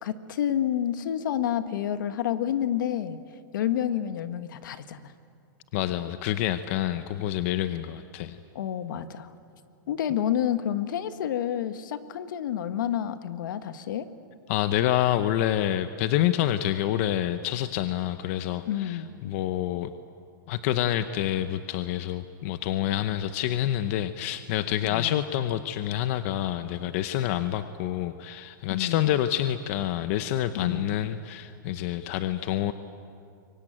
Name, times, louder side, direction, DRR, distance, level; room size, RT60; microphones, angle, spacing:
voice 1, 0.0-3.2 3.5-5.1 8.5-9.3 9.9-14.1 18.6-19.1 24.9-25.3 28.7-29.0 30.5-30.9, left 10 dB, 70° left, 10 dB, 1.5 m, -29 dB
voice 2, 5.7-8.4 14.5-19.9 20.5-32.7, left 12 dB, 40° left, 11 dB, 0.8 m, -27 dB
27.0 x 23.5 x 9.0 m, 2.4 s
supercardioid pair, 165°, 11 cm